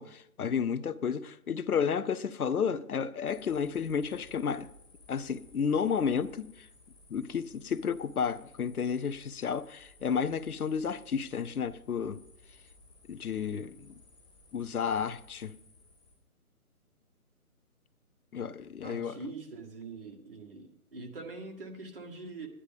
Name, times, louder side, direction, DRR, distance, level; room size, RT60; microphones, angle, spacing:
voice 1, 0.0-4.7 5.1-6.7 7.1-12.2 13.1-13.9 14.5-15.5 18.3-19.2, left 6 dB, 75° left, 0.8 m, -32 dB
sound 1, 3.3-16.1, left 2 dB, 25° left, 4.4 m, -58 dB
voice 2, 18.8-22.5, right 3 dB, 40° right, 1.7 m, -43 dB
11.5 x 9.9 x 5.3 m
hypercardioid pair, 170°, 45 cm